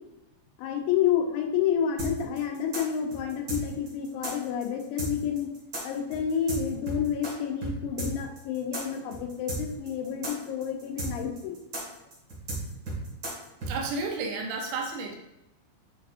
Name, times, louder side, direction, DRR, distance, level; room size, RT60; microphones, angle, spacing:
voice 1, 0.6-5.5 5.8-11.6, left 8 dB, 75° left, 2 dB, 3.0 m, -29 dB
sound 1, 2.0-7.3 7.6-7.7 8.0-13.7, right 2 dB, 45° right, 1.2 m, -34 dB
voice 2, 13.7-15.2, right 3 dB, 80° right, 1 dB, 3.1 m, -32 dB
8.7 x 5.3 x 2.6 m, 0.90 s
omnidirectional pair, 5.5 m